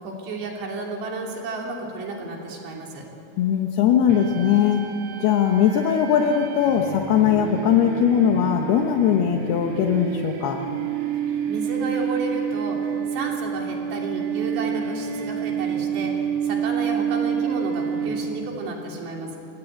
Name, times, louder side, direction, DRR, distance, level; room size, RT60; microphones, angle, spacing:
voice 1, 0.0-3.0 11.3-19.4, right 2 dB, 80° right, 0 dB, 5.2 m, -32 dB
voice 2, 3.4-4.9 5.2-10.6, left 8 dB, 75° left, 4 dB, 2.9 m, -20 dB
sound 1, 4.1-18.6, right 8 dB, 50° right, 2.1 m, -29 dB
27.0 x 17.0 x 9.0 m, 2.7 s
omnidirectional pair, 4.9 m